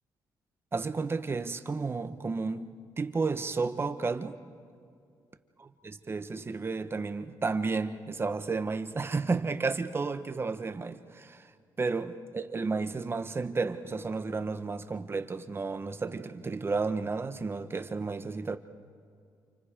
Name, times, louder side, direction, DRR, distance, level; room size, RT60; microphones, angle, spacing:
voice 1, 0.7-4.4 5.8-11.5 11.8-18.6, right 4 dB, 30° right, 1.2 m, -32 dB
29.5 x 28.5 x 5.2 m
cardioid pair, 105°, 8 cm